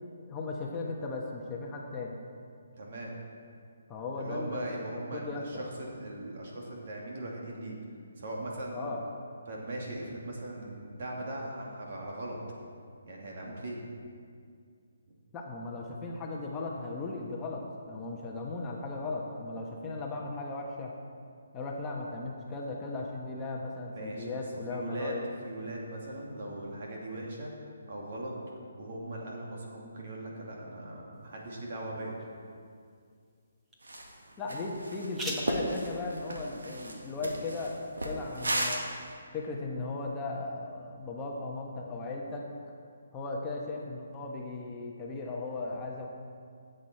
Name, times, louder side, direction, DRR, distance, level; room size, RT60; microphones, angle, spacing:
voice 1, 0.3-2.2 3.9-4.8 5.1-5.6 8.7-9.0 15.3-21.0 21.5-25.2 34.4-38.9 39.3-42.5 43.1-46.1, left 3 dB, 15° left, -2 dB, 1.1 m, -37 dB
voice 2, 2.8-3.1 4.2-7.8 8.2-8.9 9.5-12.4 13.1-13.8 23.9-24.4 24.7-25.2 25.4-27.5 27.9-28.3 28.8-32.2, right 1 dB, 55° right, -2 dB, 2.7 m, -39 dB
sound 1, 31.1-38.6, right 1 dB, 10° right, 1.3 m, -47 dB
sound 2, 33.8-34.2 34.5-39.1, right 1 dB, 90° right, 1.9 m, -35 dB
14.0 x 8.0 x 4.5 m, 2.2 s
hypercardioid pair, 155°, 0 cm